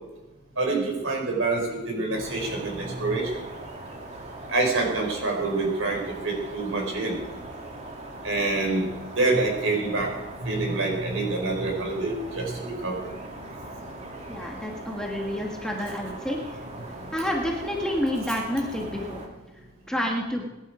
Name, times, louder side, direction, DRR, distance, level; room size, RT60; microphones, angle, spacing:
voice 1, 0.6-3.4 4.5-7.2 8.2-8.9 9.2-10.1 10.4-13.1, right 3 dB, 65° right, 0 dB, 5.4 m, -26 dB
sound 1, 2.1-19.3, right 1 dB, 30° right, 2.6 m, -40 dB
voice 2, 14.3-16.6 17.1-19.2 19.9-20.4, left 1 dB, 5° left, -1 dB, 1.9 m, -29 dB
22.5 x 11.0 x 5.2 m, 1.1 s
head